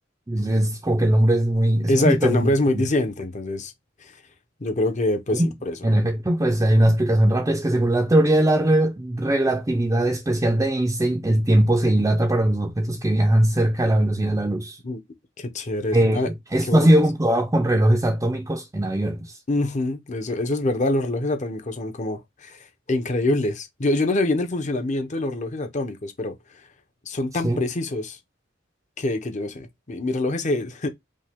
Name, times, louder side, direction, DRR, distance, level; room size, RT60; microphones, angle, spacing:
voice 1, 0.3-2.8 5.3-5.5 5.8-14.8 15.9-19.3 27.4-27.6, right 1 dB, 15° right, 0.5 m, -20 dB
voice 2, 1.9-3.7 4.0-4.1 4.6-5.8 14.8-15.0 15.4-16.3 16.6-16.9 19.5-26.4 27.1-28.2 29.0-30.9, left 2 dB, 40° left, 0.8 m, -25 dB
5.3 x 2.3 x 3.5 m
head